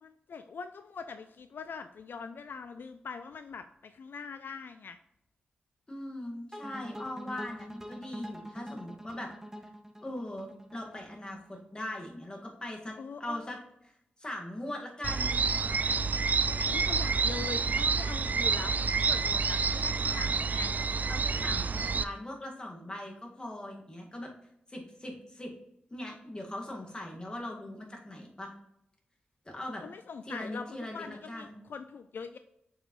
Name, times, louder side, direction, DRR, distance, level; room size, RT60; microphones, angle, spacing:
voice 1, 0.0-5.0 13.0-13.5 16.7-20.7 21.7-22.0 29.8-32.4, left 5 dB, 70° left, 10 dB, 0.3 m, -43 dB
voice 2, 5.9-9.3 10.0-13.6 13.8-13.9 14.2-15.3 21.1-24.3 24.7-25.5 25.9-28.5 29.4-29.8 30.2-31.6, left 1 dB, 25° left, 0 dB, 1.7 m, -40 dB
sound 1, 6.5-11.6, equal, 15° right, 0.9 m, -45 dB
sound 2, 15.0-22.0, right 5 dB, 50° right, 0.4 m, -28 dB
6.5 x 4.8 x 3.0 m, 0.78 s
cardioid pair, 65°, 4 cm